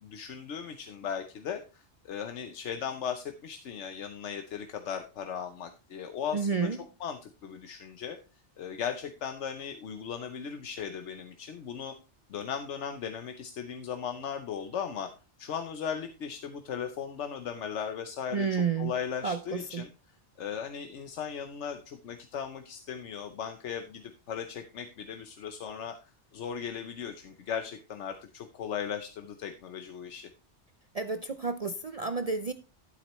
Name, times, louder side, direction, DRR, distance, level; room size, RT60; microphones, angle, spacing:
voice 1, 0.0-6.7 7.0-8.2 8.6-11.9 12.3-15.1 15.4-19.9 20.4-30.3, left 7 dB, 80° left, 6 dB, 1.1 m, -37 dB
voice 2, 6.3-6.8 18.3-18.9 19.2-19.8 30.9-32.5, right 5 dB, 45° right, 9 dB, 0.5 m, -30 dB
12.0 x 8.2 x 3.1 m, 0.31 s
omnidirectional pair, 1.2 m